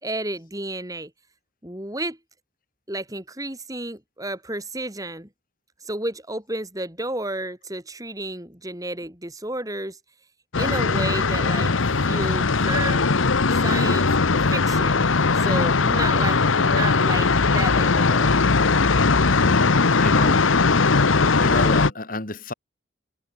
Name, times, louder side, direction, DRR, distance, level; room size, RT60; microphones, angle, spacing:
voice 1, 0.0-1.1 1.6-2.2 2.9-5.3 5.8-10.0 10.6-13.0 13.6-15.1 15.3-18.4, right 1 dB, 20° right, 4.3 m, -32 dB
sound 1, 10.5-21.9, left 4 dB, 90° left, 1.1 m, -19 dB
voice 2, 20.0-20.4 20.7-21.0 21.4-22.5, left 2 dB, 45° left, 3.0 m, -28 dB
head